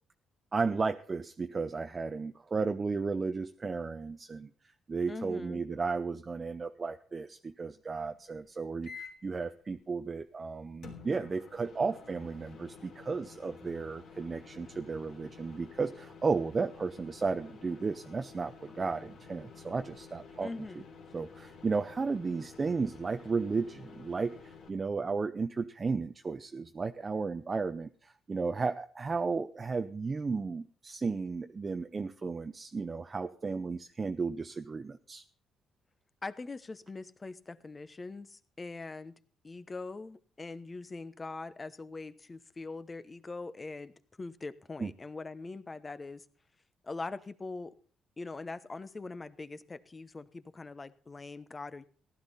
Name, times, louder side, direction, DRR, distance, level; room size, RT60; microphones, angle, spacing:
voice 1, 0.5-4.5 4.9-20.5 21.1-24.4 24.7-35.2 44.8-44.9, right 4 dB, 30° right, 8 dB, 0.6 m, -34 dB
voice 2, 5.1-5.6 20.4-20.9 36.2-39.1 39.4-46.2 46.8-47.7 48.2-51.8, left 3 dB, 25° left, 14 dB, 0.9 m, -42 dB
sound 1, 8.8-9.3 10.8-24.7, left 5 dB, 70° left, 3.2 m, -51 dB
15.5 x 11.5 x 4.1 m, 0.42 s
cardioid pair, 90°, 0 cm